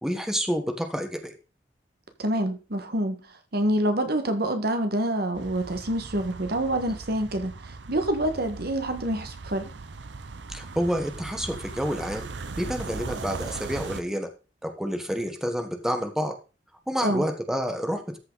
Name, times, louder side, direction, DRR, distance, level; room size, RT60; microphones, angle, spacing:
voice 1, 0.0-1.3 10.5-12.3 12.6-14.3 14.6-16.3 16.9-18.2, equal, 5° right, 1.3 m, -29 dB
voice 2, 2.2-3.2 3.5-9.7 17.0-17.2, right 1 dB, 60° right, 1.6 m, -27 dB
sound 1, 5.3-14.0, right 4 dB, 75° right, 0.7 m, -39 dB
13.5 x 5.7 x 4.0 m
head